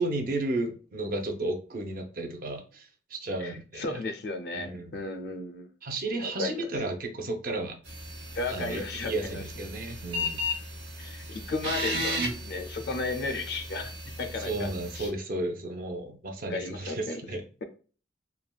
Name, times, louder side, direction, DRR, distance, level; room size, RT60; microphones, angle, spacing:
voice 1, 0.0-4.0 4.5-4.9 5.8-7.8 8.5-10.4 14.4-17.4, right 2 dB, 50° right, 5 dB, 0.5 m, -33 dB
voice 2, 3.4-5.7 6.2-6.7 8.3-9.4 11.0-14.7 14.9-15.1 16.5-17.2, left 3 dB, 65° left, 7 dB, 0.4 m, -34 dB
sound 1, 7.9-15.1, left 1 dB, 75° right, 0.9 m, -35 dB
3.3 x 2.2 x 2.3 m, 0.38 s
head